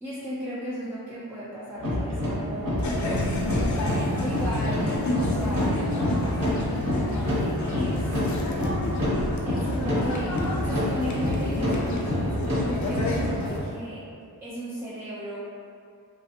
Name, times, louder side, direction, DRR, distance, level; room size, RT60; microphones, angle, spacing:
voice 1, 0.0-2.9 4.2-8.2 9.4-14.0 14.4-15.4, equal, 5° right, -10 dB, 0.4 m, -35 dB
sound 1, 1.8-13.6, left 1 dB, 60° right, 0.9 m, -28 dB
sound 2, 2.8-13.6, left 1 dB, 55° left, 0.4 m, -30 dB
3.1 x 2.0 x 2.8 m, 2.3 s
wide cardioid pair, 130°, 37 cm